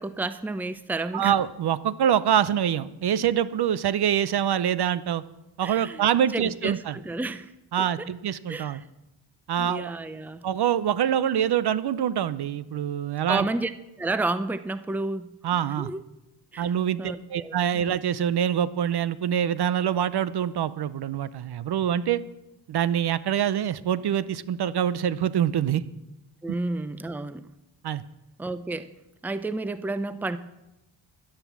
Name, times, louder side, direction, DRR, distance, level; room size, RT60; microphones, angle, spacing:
voice 1, 0.0-1.3 5.6-6.0 6.3-7.5 7.8-8.1 8.5-8.9 9.6-10.4 13.3-13.7 14.0-15.3 15.8-16.0 16.5-16.7 17.0-17.9 26.4-27.5 28.4-28.9 29.2-30.4, right 2 dB, 5° right, 13 dB, 0.6 m, -31 dB
voice 2, 1.1-5.2 5.6-6.9 7.7-8.8 9.5-9.9 10.4-13.5 15.4-15.9 16.6-22.2 22.7-25.8 27.8-28.0, right 9 dB, 55° right, 16 dB, 0.7 m, -25 dB
11.5 x 10.5 x 7.3 m, 0.93 s
cardioid pair, 95°, 46 cm